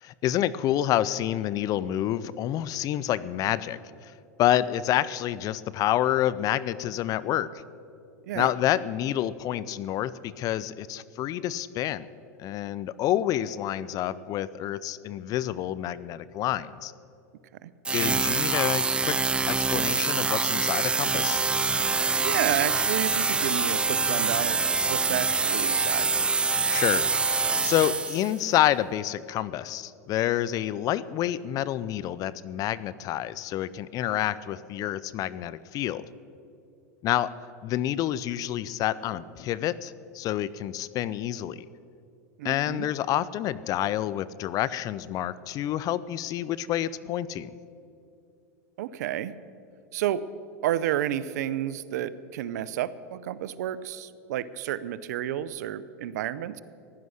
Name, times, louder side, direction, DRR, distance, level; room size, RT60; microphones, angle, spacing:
voice 1, 0.0-4.1 4.4-7.5 8.3-12.1 12.4-16.9 17.9-19.2 19.5-21.4 26.7-27.1 27.6-36.1 37.0-37.3 37.6-41.6 42.4-47.5, left 12 dB, 40° left, 18 dB, 0.5 m, -28 dB
sound 1, 17.8-28.4, right 4 dB, 10° right, 0.3 m, -25 dB
voice 2, 22.2-26.1 42.4-42.9 48.8-49.4 49.9-50.3 50.6-56.6, right 11 dB, 75° right, 16 dB, 0.6 m, -31 dB
15.5 x 11.0 x 6.4 m, 2.6 s
supercardioid pair, 115°, 9 cm